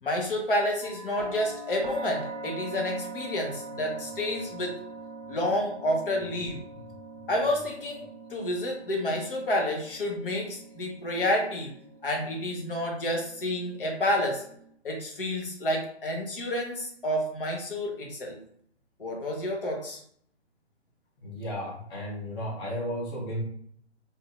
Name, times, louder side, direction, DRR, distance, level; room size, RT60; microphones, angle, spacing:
voice 1, 0.0-4.8 5.3-6.6 7.3-11.7 12.0-14.4 14.8-18.4 19.0-20.0, left 1 dB, 50° left, 1 dB, 1.1 m, -29 dB
sound 1, 0.8-14.7, right 2 dB, 40° right, 0.9 m, -43 dB
voice 2, 21.2-23.4, equal, 20° left, -5 dB, 1.0 m, -34 dB
3.9 x 2.8 x 2.4 m, 0.63 s
figure-of-eight pair, 135°, 34 cm